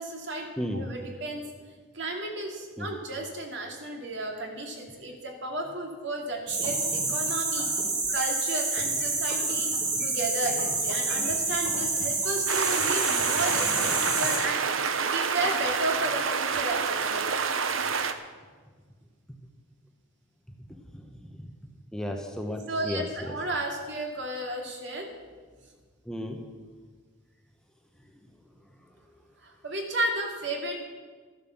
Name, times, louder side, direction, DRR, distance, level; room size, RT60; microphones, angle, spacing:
voice 1, 0.0-0.5 0.7-1.4 1.9-7.7 8.1-9.7 10.0-14.6 15.1-17.3 22.7-25.1 29.4-30.8, right 1 dB, 60° right, 1 dB, 2.5 m, -33 dB
voice 2, 0.6-1.0 2.8-3.0 13.0-13.1 20.7-21.5 21.9-23.4 26.0-26.4 27.9-29.6, equal, 5° left, 3 dB, 0.9 m, -36 dB
sound 1, 6.5-14.4, right 3 dB, 40° right, 3.4 m, -28 dB
sound 2, 12.5-18.1, right 5 dB, 85° right, 0.9 m, -28 dB
13.5 x 10.5 x 7.2 m, 1.5 s
head